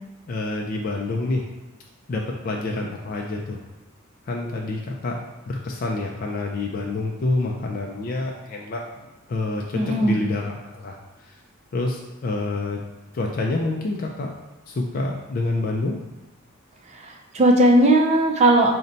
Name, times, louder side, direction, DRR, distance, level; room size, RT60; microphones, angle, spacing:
voice 1, 0.3-1.5 2.1-3.6 4.2-5.2 5.5-11.4 11.7-12.8 13.1-14.3 14.7-16.0, left 2 dB, 45° left, 0 dB, 0.3 m, -27 dB
voice 2, 9.7-10.2 17.0-18.7, right 1 dB, 30° right, 2 dB, 0.4 m, -17 dB
4.0 x 2.1 x 3.9 m, 1.0 s
head